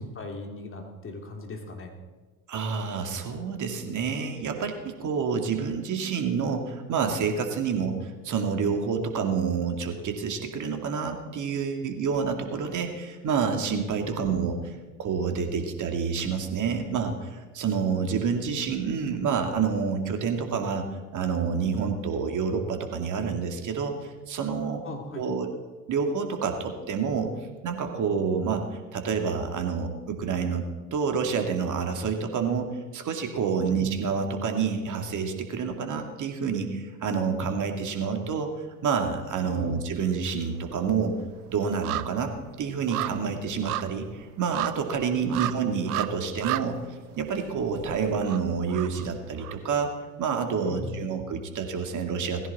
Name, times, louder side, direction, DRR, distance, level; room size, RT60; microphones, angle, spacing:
voice 1, 0.0-1.9 14.0-14.4 24.8-25.2 33.6-33.9 39.5-39.9 45.2-45.6 50.6-51.1, left 3 dB, 25° left, 2 dB, 3.0 m, -39 dB
voice 2, 2.5-14.5 15.0-20.9 21.1-24.8 25.2-25.5 25.9-27.3 27.6-28.6 28.9-30.6 30.9-38.5 38.8-41.2 41.5-46.8 47.2-52.5, right 6 dB, 40° right, 4 dB, 2.4 m, -28 dB
sound 1, 39.0-39.7 39.9-49.9 50.3-50.4, right 15 dB, 70° right, 0.8 m, -36 dB
17.5 x 15.5 x 4.3 m, 1.3 s
hypercardioid pair, 75°, 46 cm